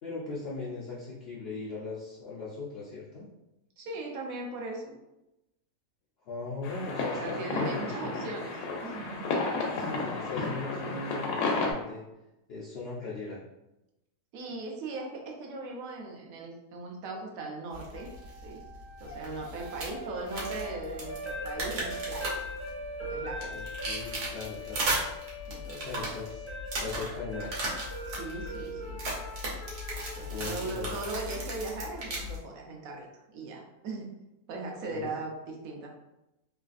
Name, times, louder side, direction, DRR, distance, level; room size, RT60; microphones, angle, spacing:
voice 1, 0.0-3.3 6.3-8.3 9.7-12.0 12.5-13.4 23.5-24.9 25.8-27.5 30.3-30.9 34.9-35.1, left 3 dB, 85° left, -6 dB, 0.5 m, -39 dB
voice 2, 3.8-5.0 7.2-9.4 14.3-18.1 18.4-18.6 19.0-22.4 23.0-23.6 25.5-26.1 28.0-29.0 30.2-34.1 34.5-35.9, right 3 dB, 70° right, 0 dB, 1.0 m, -39 dB
sound 1, 6.6-11.7, left 3 dB, 70° left, 0.9 m, -32 dB
sound 2, 17.7-32.4, right 1 dB, 85° right, 1.4 m, -37 dB
sound 3, 17.9-32.0, equal, 20° right, 0.4 m, -42 dB
3.2 x 2.4 x 2.4 m, 0.93 s
omnidirectional pair, 1.7 m